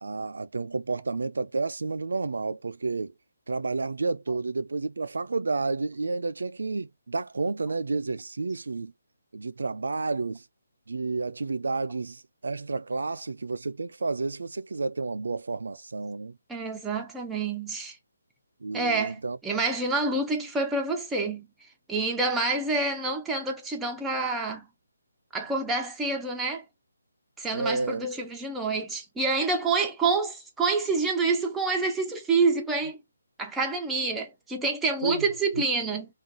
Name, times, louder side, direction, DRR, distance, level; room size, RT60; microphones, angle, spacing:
voice 1, 0.0-3.1 3.5-8.9 9.3-10.4 10.9-16.4 18.6-19.4 27.5-28.1 35.0-35.3 35.6-35.7, right 3 dB, 80° right, 0.4 m, -30 dB
voice 2, 16.5-18.0 18.7-24.7 25.3-26.6 27.4-33.0 33.4-36.1, right 3 dB, 5° right, 0.4 m, -27 dB
2.4 x 2.3 x 3.6 m
hypercardioid pair, 170°, 0 cm